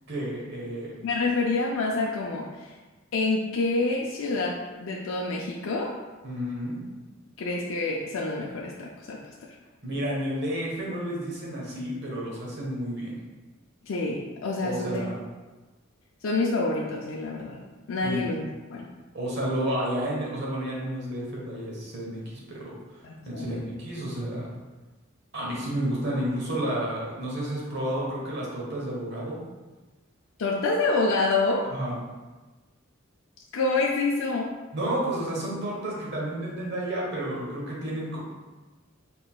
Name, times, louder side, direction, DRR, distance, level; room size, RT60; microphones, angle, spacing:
voice 1, 0.1-0.9 6.2-6.8 9.8-13.2 14.6-15.1 18.0-18.3 19.1-22.7 23.2-24.5 25.3-29.4 31.7-32.0 34.7-38.2, right 1 dB, 60° right, -4 dB, 1.2 m, -31 dB
voice 2, 1.0-2.7 3.1-5.9 7.4-9.2 13.9-15.1 16.2-17.6 17.9-18.4 18.7-18.9 23.0-23.6 30.4-31.6 33.5-34.5, left 3 dB, 75° left, -2 dB, 0.4 m, -27 dB
3.8 x 3.8 x 2.3 m, 1.2 s
head